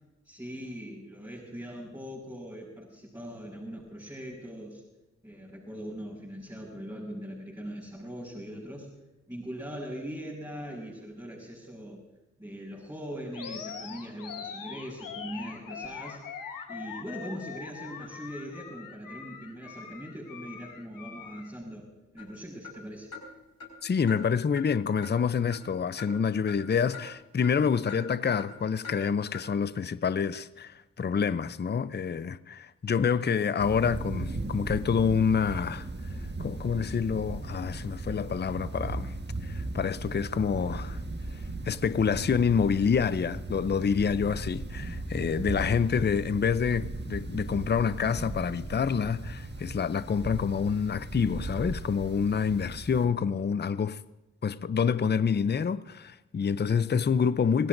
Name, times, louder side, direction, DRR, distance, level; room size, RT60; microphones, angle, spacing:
voice 1, 0.2-4.8 5.2-8.9 9.3-12.0 12.4-16.2 16.7-21.9 22.1-23.1, equal, 10° right, 6.0 m, -41 dB
Animal, 13.3-21.5, left 6 dB, 85° left, 1.4 m, -42 dB
sound 1, 22.2-22.3 22.6-22.8 23.1-23.3 23.6-23.7 24.1-24.2 24.6-24.7 25.0-25.2 25.5-25.7 26.0-26.1 26.5-26.6 26.9-27.0 27.4-27.6 27.9-28.0 28.4-28.5 28.8-29.0 29.3-29.5, left 5 dB, 55° left, 5.3 m, -42 dB
voice 2, 23.8-35.9 36.4-39.1 39.4-41.0 41.6-54.0 54.4-57.7, left 6 dB, 30° left, 0.6 m, -27 dB
sound 2, 33.6-53.1, right 2 dB, 35° right, 1.5 m, -37 dB
26.0 x 16.5 x 2.6 m
cardioid pair, 45°, 32 cm